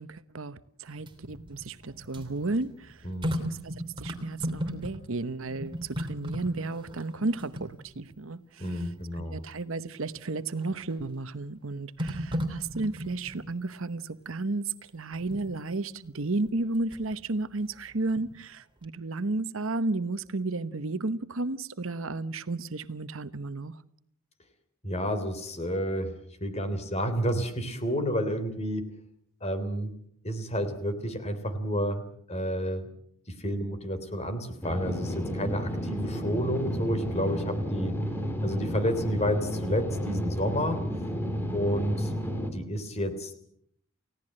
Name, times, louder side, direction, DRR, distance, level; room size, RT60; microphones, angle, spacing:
voice 1, 0.0-3.0 3.4-8.6 9.2-23.7, right 2 dB, 65° right, 1.0 m, -33 dB
sound 1, 0.9-5.2 5.5-8.3 8.8-8.9 10.6-11.0 12.0-13.5 15.1-15.5 16.5-17.2 17.6-18.6 18.8-18.9, equal, 20° right, 3.0 m, -36 dB
voice 2, 3.0-3.4 8.6-9.4 24.8-26.1 26.4-28.8 29.4-29.9 30.2-32.9 33.3-38.0 38.4-40.8 41.5-42.1 42.5-43.5, equal, 30° left, 3.4 m, -30 dB
sound 2, 34.6-42.5, equal, 10° left, 3.4 m, -31 dB
29.5 x 17.0 x 7.7 m
head